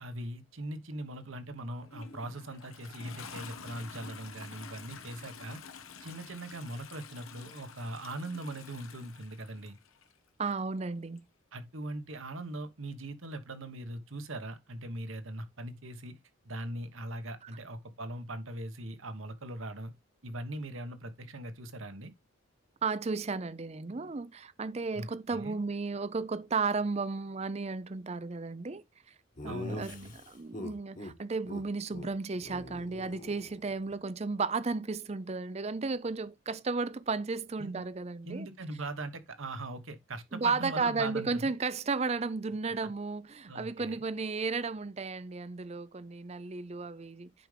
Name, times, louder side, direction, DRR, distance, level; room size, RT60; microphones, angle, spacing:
voice 1, 0.0-5.6 6.0-9.8 11.5-16.1 16.4-19.9 20.2-22.1 24.9-25.6 29.5-30.1 37.6-37.8 38.2-41.5 43.5-44.0, right 1 dB, 75° right, 1.3 m, -40 dB
Toilet flush, 1.7-10.1 11.2-11.3, left 5 dB, 85° left, 1.2 m, -49 dB
voice 2, 10.4-11.2 17.4-17.5 22.8-29.1 29.4-30.0 30.3-38.5 40.3-47.3, right 4 dB, 30° right, 0.5 m, -34 dB
Laughter, 29.4-31.1 31.5-31.6 31.9-32.1 32.4-33.9, left 1 dB, 40° left, 1.5 m, -43 dB
10.5 x 5.1 x 3.4 m
head